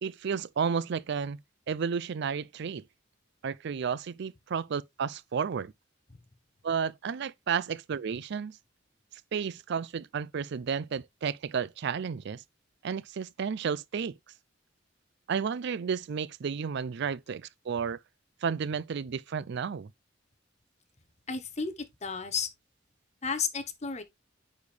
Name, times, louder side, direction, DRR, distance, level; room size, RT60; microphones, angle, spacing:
voice 1, 0.0-1.4 1.7-2.8 3.4-5.7 6.6-8.6 9.3-12.4 12.8-14.2 15.3-18.0 18.4-19.9, right 6 dB, 60° right, 0.4 m, -32 dB
voice 2, 21.3-22.5 23.2-24.0, left 5 dB, 35° left, 1.0 m, -32 dB
9.5 x 4.3 x 3.3 m
head